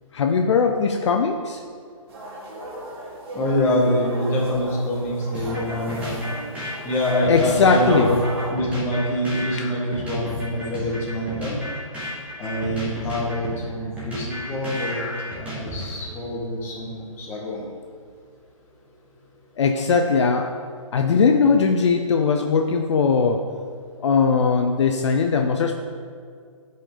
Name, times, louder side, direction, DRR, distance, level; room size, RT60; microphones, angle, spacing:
voice 1, 0.1-1.6 7.3-8.2 19.6-20.5 20.9-23.4 24.0-25.7, left 5 dB, 55° left, 4 dB, 0.5 m, -19 dB
sound 1, 2.1-8.5, right 1 dB, 45° right, 2.2 m, -36 dB
voice 2, 3.3-6.1 6.8-8.2 8.5-11.6 12.4-15.1 15.4-17.6, left 1 dB, 15° left, -5 dB, 1.5 m, -25 dB
sound 2, 5.3-16.1, left 1 dB, 10° right, 1.8 m, -33 dB
10.0 x 5.3 x 3.9 m, 2.2 s
hypercardioid pair, 155°, 18 cm